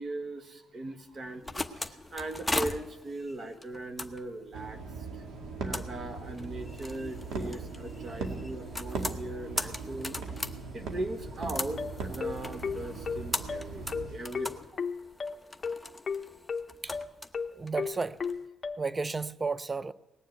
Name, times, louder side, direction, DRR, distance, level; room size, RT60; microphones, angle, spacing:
voice 1, 0.0-5.2 5.6-10.2 10.7-14.6, right 2 dB, 45° right, 1.4 m, -39 dB
sound 1, 1.1-18.4, left 2 dB, 5° left, 0.9 m, -39 dB
sound 2, 4.5-14.3, right 4 dB, 75° right, 2.0 m, -39 dB
sound 3, 11.8-18.8, left 5 dB, 40° left, 0.7 m, -34 dB
voice 2, 17.6-18.2 18.8-19.9, right 4 dB, 25° right, 0.5 m, -32 dB
19.0 x 7.3 x 9.2 m
cardioid pair, 90°, 0 cm